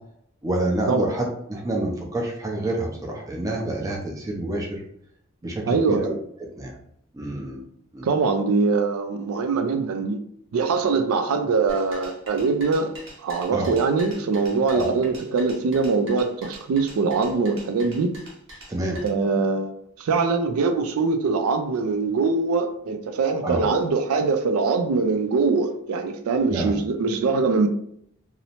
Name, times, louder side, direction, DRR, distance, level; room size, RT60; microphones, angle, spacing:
voice 1, 0.4-4.8 5.4-6.1 6.6-6.8 7.1-7.7 7.9-8.1 13.5-13.7 14.7-14.9 18.7-19.0 23.4-23.6 26.5-26.7, right 1 dB, 15° right, 0.5 m, -27 dB
voice 2, 5.7-6.0 8.0-10.2 10.5-12.9 13.2-18.2 19.0-27.7, right 4 dB, 85° right, 0.4 m, -23 dB
sound 1, 11.7-19.1, equal, 60° right, 0.9 m, -44 dB
2.7 x 2.0 x 2.8 m
head